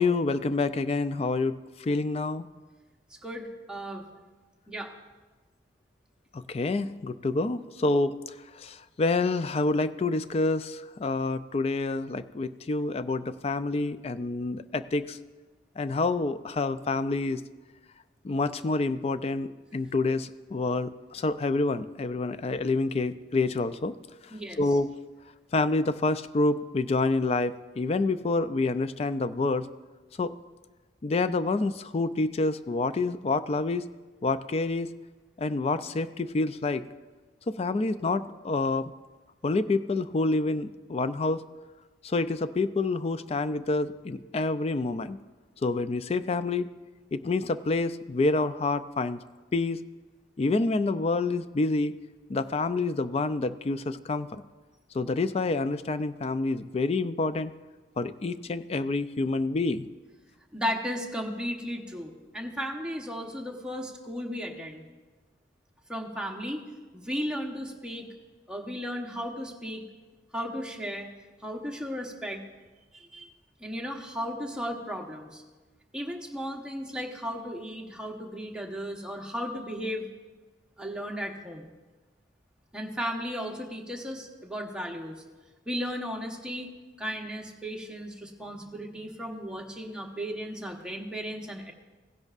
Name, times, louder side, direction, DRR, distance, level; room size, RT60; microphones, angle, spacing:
voice 1, 0.0-2.5 6.3-8.2 8.6-15.2 15.8-17.4 18.2-23.9 24.6-24.9 25.5-29.7 30.2-30.4 31.0-33.9 34.2-34.9 35.4-36.8 37.5-38.9 39.4-41.5 42.0-45.2 45.6-46.7 47.1-49.2 49.5-49.8 50.4-51.9 52.3-54.4 54.9-57.5 58.0-59.9, left 3 dB, 35° left, 13 dB, 0.3 m, -27 dB
voice 2, 3.2-4.0 4.7-4.9 24.3-24.6 60.5-64.8 65.9-66.6 66.9-68.1 68.5-69.8 70.3-71.1 71.4-72.4 72.9-73.3 73.6-75.4 75.9-80.1 80.8-81.7 82.7-85.2 85.7-86.7 87.0-91.7, equal, 5° right, 0 dB, 1.0 m, -35 dB
16.5 x 10.5 x 2.5 m, 1.3 s
head